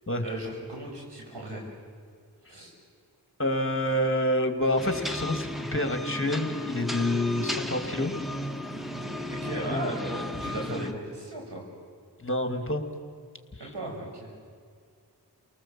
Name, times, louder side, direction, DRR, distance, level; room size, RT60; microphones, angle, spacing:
voice 1, 0.2-1.6 2.5-2.7 9.3-11.6 13.6-14.3, right 1 dB, 90° right, 0 dB, 6.4 m, -36 dB
voice 2, 3.4-8.1 9.7-9.9 12.2-12.8 13.6-13.7, left 1 dB, 30° left, 6 dB, 2.5 m, -27 dB
sound 1, 4.8-10.9, left 1 dB, ahead, 1.5 m, -34 dB
30.0 x 19.0 x 7.6 m, 2.1 s
cardioid pair, 50°, 40 cm